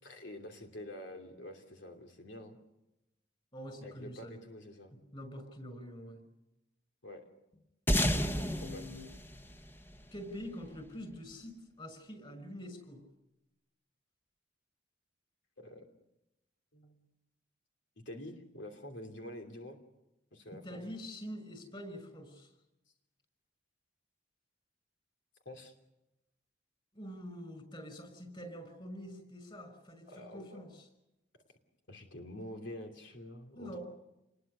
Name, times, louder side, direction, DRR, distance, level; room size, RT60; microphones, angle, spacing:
voice 1, 0.0-2.6 3.8-4.9 7.0-7.2 8.6-8.9 15.6-15.9 16.7-17.1 18.0-19.8 20.3-21.0 25.4-25.7 30.1-30.6 31.9-33.8, left 1 dB, 80° left, 3 dB, 2.9 m, -47 dB
voice 2, 3.5-4.4 5.1-6.2 8.0-9.0 10.1-13.0 20.5-22.5 26.9-30.9 33.5-33.8, equal, 30° left, 9 dB, 6.0 m, -45 dB
sound 1, 7.9-10.7, equal, 10° left, 1.1 m, -32 dB
28.0 x 21.5 x 6.8 m, 0.92 s
head